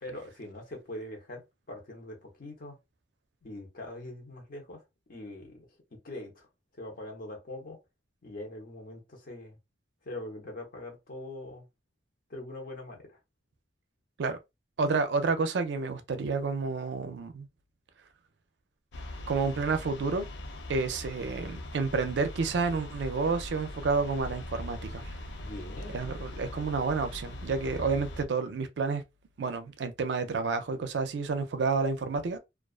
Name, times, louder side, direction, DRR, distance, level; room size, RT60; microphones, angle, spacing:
voice 1, 0.0-2.8 3.4-4.8 5.1-5.7 6.0-6.5 6.7-7.8 8.2-9.6 10.0-11.7 12.3-13.2 25.4-26.0, left 1 dB, 55° left, 0.9 m, -42 dB
voice 2, 14.8-17.5 19.3-20.3 20.7-25.1 25.9-29.0 29.4-32.4, right 4 dB, 70° right, 0.4 m, -30 dB
sound 1, 18.9-28.3, left 1 dB, 70° left, 0.5 m, -41 dB
2.3 x 2.3 x 2.3 m
head